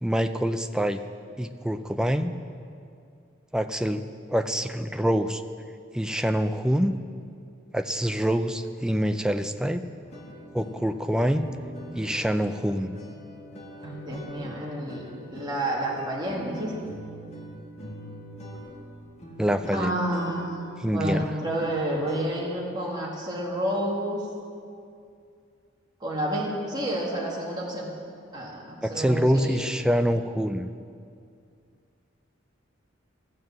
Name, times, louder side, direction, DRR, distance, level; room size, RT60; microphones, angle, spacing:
voice 1, 0.0-1.0 1.4-2.3 3.5-4.0 4.3-5.4 5.9-6.9 7.7-9.8 10.5-11.5 11.9-12.9 19.4-19.9 20.8-21.3 28.8-30.7, equal, 5° right, 8 dB, 0.4 m, -25 dB
sound 1, 10.0-22.3, equal, 35° left, 1.7 m, -43 dB
voice 2, 13.8-16.7 19.7-20.6 20.9-24.2 26.0-27.9 28.3-28.6 28.9-29.6, right 1 dB, 20° right, -4 dB, 2.4 m, -30 dB
14.0 x 7.6 x 7.7 m, 2.4 s
head